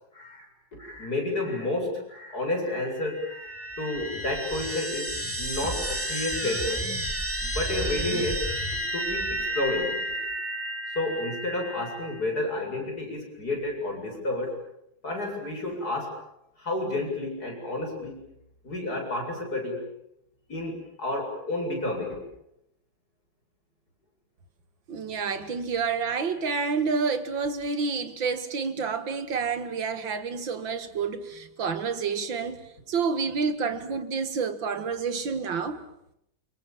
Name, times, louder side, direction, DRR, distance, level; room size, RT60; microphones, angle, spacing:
voice 1, 0.1-6.9 7.4-8.5 8.9-10.0 10.9-14.6 15.0-16.2 16.6-18.3 18.6-19.8 20.5-22.2, left 2 dB, 50° left, 8.4 m, -31 dB
sound 1, 3.0-12.2, equal, 5° right, 2.8 m, -32 dB
voice 2, 24.9-35.8, right 5 dB, 75° right, 2.5 m, -29 dB
29.0 x 26.5 x 7.4 m
omnidirectional pair, 2.1 m